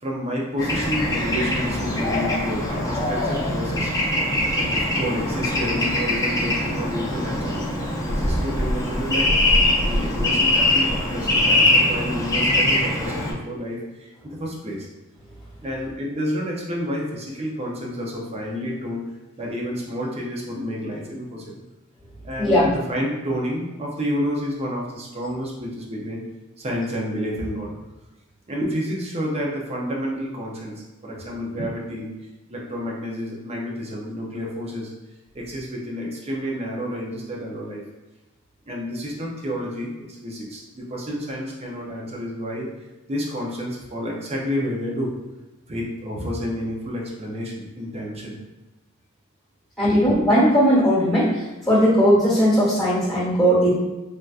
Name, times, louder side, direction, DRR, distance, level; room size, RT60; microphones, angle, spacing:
voice 1, 0.0-3.9 4.6-7.6 8.1-9.3 9.8-14.9 15.6-19.0 19.4-21.7 22.2-26.2 26.6-27.7 28.5-32.1 32.5-34.9 35.3-37.8 38.7-42.7 43.1-45.1 45.7-48.4 49.9-50.0, equal, 30° right, -2 dB, 0.6 m, -29 dB
Bird / Traffic noise roadway noise, 0.6-13.3, left 1 dB, 15° left, 0.5 m, -22 dB
voice 2, 22.4-22.7 49.8-51.3 51.7-53.7, equal, ahead, -9 dB, 1.3 m, -18 dB
3.4 x 2.7 x 2.4 m, 1.1 s
head